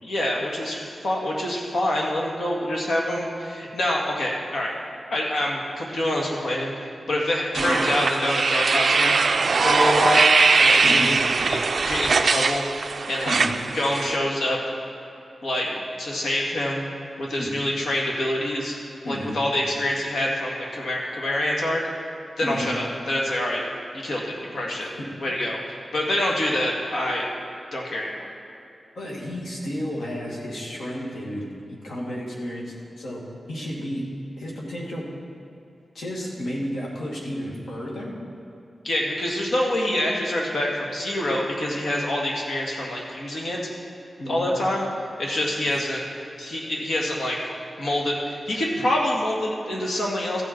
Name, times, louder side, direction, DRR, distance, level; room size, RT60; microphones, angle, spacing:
voice 1, 0.0-4.7 5.1-9.2 9.6-11.1 11.4-12.7 13.1-13.4 13.7-14.6 15.4-15.7 16.0-16.9 17.2-18.8 19.0-21.8 22.4-23.6 24.0-24.9 25.2-27.3 27.7-28.3 38.8-43.7 44.3-44.9 45.2-46.0 46.4-47.5 47.8-50.4, left 1 dB, 75° left, -2 dB, 1.9 m, -26 dB
sound 1, 7.6-14.2, right 4 dB, 50° right, 0.4 m, -21 dB
voice 2, 10.8-11.2 13.3-13.5 17.4-17.5 19.0-19.4 22.4-22.7 25.0-25.1 26.2-26.3 29.0-33.2 33.5-34.0 34.4-35.0 35.9-38.1 44.2-44.5, equal, 90° left, -4 dB, 2.2 m, -32 dB
14.0 x 7.8 x 4.5 m, 2.8 s
wide cardioid pair, 150°, 0 cm